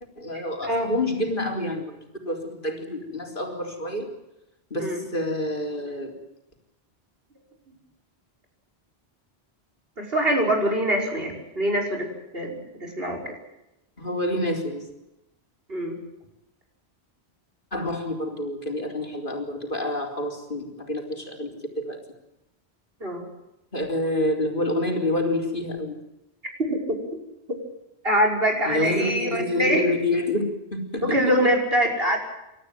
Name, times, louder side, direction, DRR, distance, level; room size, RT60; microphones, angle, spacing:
voice 1, 0.2-2.0 2.3-4.1 4.7-6.1 14.0-14.9 17.7-22.0 23.7-26.0 28.7-31.2, left 1 dB, 55° left, 2 dB, 4.1 m, -28 dB
voice 2, 10.0-12.1 12.3-13.4 15.7-16.0 23.0-23.3 26.7-26.8 28.0-29.9 31.0-32.2, equal, 65° right, 2 dB, 5.9 m, -24 dB
28.5 x 13.5 x 9.2 m, 0.91 s
omnidirectional pair, 1.0 m